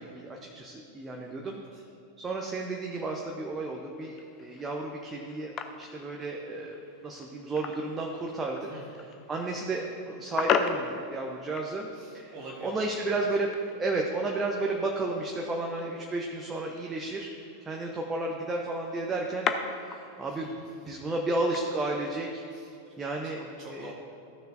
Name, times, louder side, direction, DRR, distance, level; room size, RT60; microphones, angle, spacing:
voice 1, 0.0-1.6 2.2-8.7 9.3-11.9 12.1-12.3 12.6-13.5 13.8-20.5 20.9-22.4 23.0-23.4 23.7-23.9, right 2 dB, 15° right, 0 dB, 0.8 m, -32 dB
voice 2, 1.4-1.8 8.7-9.0 11.9-13.2 20.4-20.7 22.5-23.0 23.3-23.9, right 2 dB, 30° right, -5 dB, 1.4 m, -47 dB
sound 1, 4.0-22.6, left 6 dB, 30° left, 0.5 m, -38 dB
14.0 x 6.5 x 2.6 m, 2.7 s
figure-of-eight pair, 90°, 0 cm